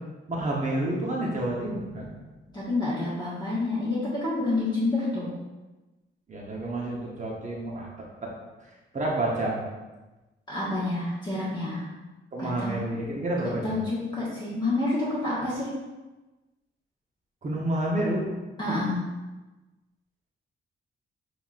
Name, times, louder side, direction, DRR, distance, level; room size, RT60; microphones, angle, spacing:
voice 1, 0.3-2.1 6.3-7.9 8.2-8.3 8.9-9.6 12.3-13.8 17.4-18.2, right 1 dB, 35° right, -3 dB, 1.0 m, -29 dB
voice 2, 2.5-5.3 10.5-11.9 12.4-12.8 13.4-15.7 18.6-19.0, left 2 dB, 20° left, -9 dB, 1.4 m, -28 dB
7.3 x 2.9 x 2.5 m, 1.1 s
cardioid pair, 90°, 20 cm